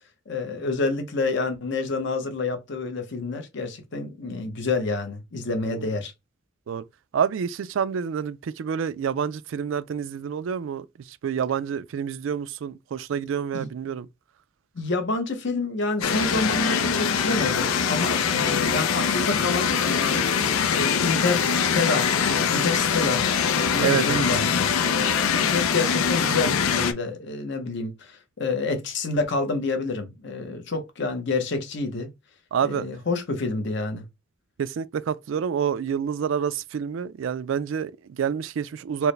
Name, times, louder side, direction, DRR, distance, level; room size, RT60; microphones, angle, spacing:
voice 1, 0.3-6.1 13.5-13.7 14.7-20.3 20.7-32.1 32.6-34.0, left 3 dB, 60° left, 0.8 m, -28 dB
voice 2, 7.1-14.1 23.8-24.3 32.5-32.9 34.6-39.1, right 7 dB, 65° right, 0.3 m, -28 dB
sound 1, 16.0-26.9, left 7 dB, 90° left, 0.5 m, -23 dB
4.5 x 2.1 x 3.2 m
head